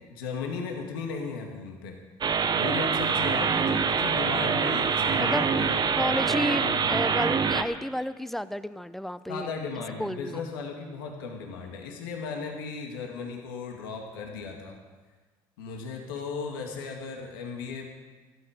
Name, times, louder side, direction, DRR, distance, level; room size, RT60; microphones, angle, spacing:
voice 1, 0.0-2.0 2.5-7.0 9.3-14.8 15.6-17.9, left 5 dB, 90° left, 2 dB, 2.0 m, -36 dB
sound 1, 2.2-7.6, right 6 dB, 40° right, 1.1 m, -25 dB
voice 2, 5.2-5.5 5.9-9.5 10.0-10.4, equal, ahead, 14 dB, 0.7 m, -31 dB
16.5 x 13.0 x 5.1 m, 1.3 s
supercardioid pair, 70°, 11 cm